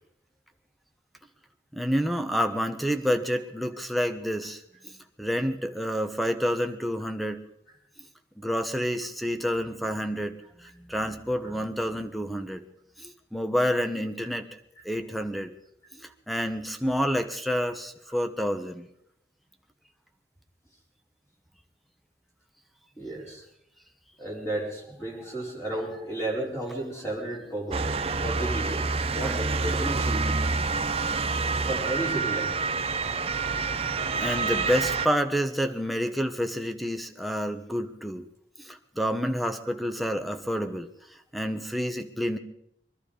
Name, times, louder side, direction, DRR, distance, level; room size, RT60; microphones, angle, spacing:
voice 1, 1.7-4.9 5.2-7.4 8.4-12.6 13.0-14.5 14.8-15.5 16.0-18.8 29.2-29.4 34.1-38.2 38.6-40.9 41.3-42.4, equal, ahead, 8 dB, 1.0 m, -29 dB
voice 2, 23.0-23.4 24.2-27.9 28.2-30.4 31.7-32.5, right 1 dB, 15° left, -3 dB, 4.6 m, -33 dB
Motor vehicle (road) / Siren, 27.7-35.1, right 4 dB, 35° right, 0.7 m, -27 dB
22.5 x 12.0 x 5.1 m, 0.75 s
head